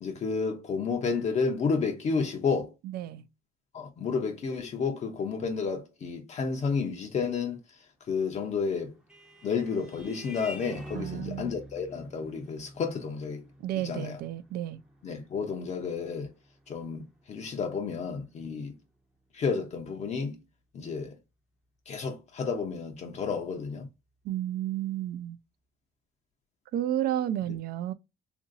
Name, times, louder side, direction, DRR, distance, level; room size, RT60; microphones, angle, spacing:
voice 1, 0.0-2.7 3.7-7.6 8.1-8.9 9.4-13.4 13.8-14.2 15.0-16.3 16.7-18.8 19.3-20.4 20.7-21.2 21.9-23.9, left 5 dB, 40° left, 0.6 m, -31 dB
voice 2, 2.9-3.3 10.9-11.5 13.6-14.8 24.2-25.4 26.7-27.9, right 12 dB, 65° right, 0.4 m, -31 dB
Vehicle horn car horn honking, 8.5-17.5, equal, 5° right, 0.6 m, -47 dB
2.9 x 2.5 x 2.5 m
cardioid pair, 110°, 17 cm